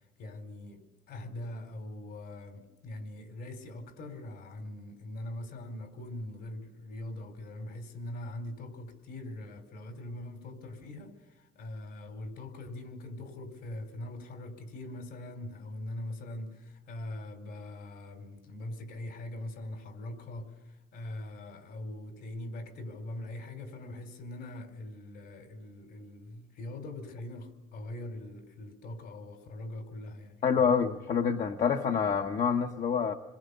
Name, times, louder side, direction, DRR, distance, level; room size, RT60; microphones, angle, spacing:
voice 1, 0.2-30.7, left 1 dB, 70° left, 4.4 m, -42 dB
voice 2, 30.4-33.2, left 6 dB, 50° left, 1.3 m, -27 dB
27.5 x 22.0 x 6.9 m
cardioid pair, 110°, 17 cm